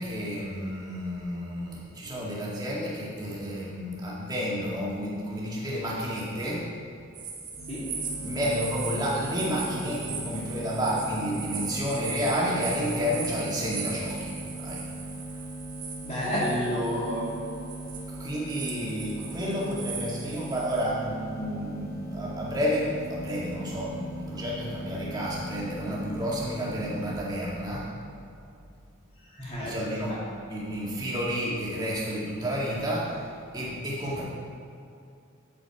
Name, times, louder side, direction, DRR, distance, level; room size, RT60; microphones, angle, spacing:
voice 1, 0.0-6.6 8.2-14.3 14.6-14.8 18.1-27.8 29.6-30.2 30.5-33.1 33.5-34.2, equal, 20° right, -6 dB, 2.0 m, -30 dB
sound 1, 7.1-20.8, right 5 dB, 40° right, 1.5 m, -39 dB
sound 2, 7.5-27.2, right 1 dB, 75° left, 1.7 m, -39 dB
voice 2, 16.0-17.2 29.3-30.2, equal, 30° left, -7 dB, 2.7 m, -30 dB
9.0 x 8.5 x 4.8 m, 2.5 s
head